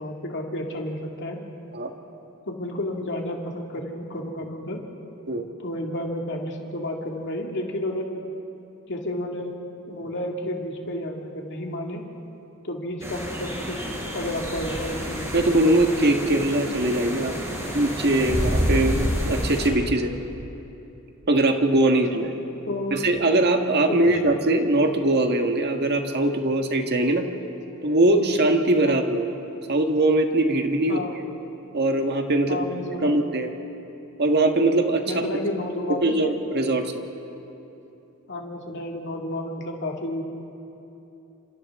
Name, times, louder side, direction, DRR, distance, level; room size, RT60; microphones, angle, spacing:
voice 1, 0.0-1.4 2.5-4.8 5.6-8.1 8.9-9.6 9.9-12.0 12.6-13.8 14.1-15.3 22.1-22.2 22.7-23.0 23.9-24.2 28.8-29.0 30.9-31.2 32.5-33.2 35.1-36.2 38.3-40.2, left 1 dB, 55° left, 1 dB, 2.3 m, -31 dB
sound 1, 13.0-19.7, equal, 15° right, 4.5 m, -28 dB
voice 2, 15.3-17.3 17.7-20.1 21.3-22.3 22.9-27.2 27.8-29.3 29.7-31.0 31.7-32.6 33.0-33.5 34.2-35.2 36.0-37.0, right 2 dB, 50° right, 4 dB, 1.7 m, -21 dB
29.0 x 26.5 x 3.7 m, 2.9 s
head